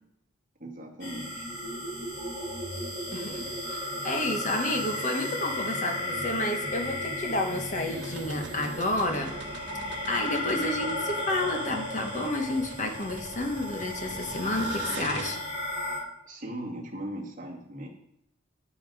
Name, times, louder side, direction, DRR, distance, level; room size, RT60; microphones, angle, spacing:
voice 1, 0.6-1.5 16.3-17.9, right 1 dB, 40° right, -2 dB, 2.1 m, -38 dB
sound 1, 1.0-16.0, left 1 dB, 80° left, 4.9 m, -34 dB
voice 2, 3.1-9.3 10.1-15.4, left 2 dB, 40° left, 4 dB, 1.4 m, -30 dB
sound 2, 7.9-15.3, right 3 dB, 60° right, 1.5 m, -43 dB
9.8 x 8.7 x 4.9 m, 0.80 s
head